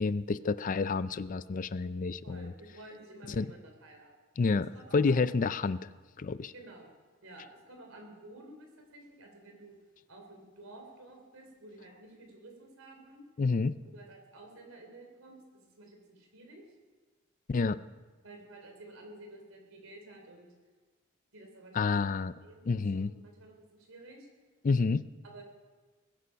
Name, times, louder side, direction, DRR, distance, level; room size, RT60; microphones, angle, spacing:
voice 1, 0.0-2.5 3.3-3.5 4.4-5.8 6.2-6.5 13.4-13.8 17.5-17.8 21.7-22.3 22.7-23.1 24.6-25.0, left 4 dB, 40° left, 16 dB, 0.4 m, -29 dB
voice 2, 2.2-4.1 4.7-5.2 6.5-6.9 7.2-9.8 10.1-13.2 13.9-16.6 18.2-20.5 21.3-21.9 22.4-24.3 25.2-25.4, right 2 dB, 80° right, 3 dB, 3.6 m, -52 dB
21.0 x 10.0 x 5.7 m, 1.3 s
head